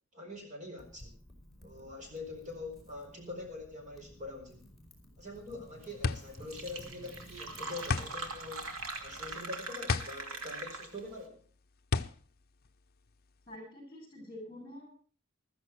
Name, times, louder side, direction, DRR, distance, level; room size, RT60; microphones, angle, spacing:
voice 1, 0.1-1.1 1.6-4.7 5.2-8.7 9.0-11.4, left 2 dB, 35° right, 3 dB, 5.0 m, -44 dB
Wind / Fire, 0.8-9.4, left 1 dB, ahead, 4.8 m, -55 dB
sound 1, 5.2-13.6, left 4 dB, 45° left, 0.7 m, -36 dB
Fill (with liquid), 6.0-6.1 6.3-11.1, right 3 dB, 90° right, 2.5 m, -42 dB
voice 2, 13.5-14.9, left 1 dB, 25° left, -5 dB, 7.6 m, -47 dB
15.0 x 13.5 x 4.7 m, 0.42 s
head